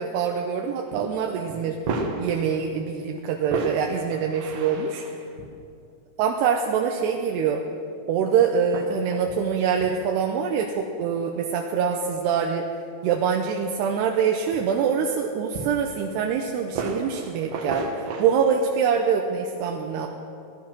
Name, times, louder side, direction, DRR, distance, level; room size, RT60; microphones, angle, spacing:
voice 1, 0.0-1.8 2.2-5.0 6.2-7.6 8.1-12.7 13.0-17.9 18.2-20.1, right 7 dB, 80° right, 2 dB, 2.8 m, -24 dB
sound 1, 0.9-1.1 1.5-2.8 3.4-5.5 6.6-7.2 7.5-7.6 8.2-8.3 8.7-9.4 9.8-10.1 11.0-11.1 12.0-12.3 13.1-13.2 13.6-13.7 14.2-15.3 15.5-16.1 16.7-18.3, right 3 dB, 60° right, 2.2 m, -33 dB
17.0 x 11.5 x 6.1 m, 2.5 s
omnidirectional pair, 4.8 m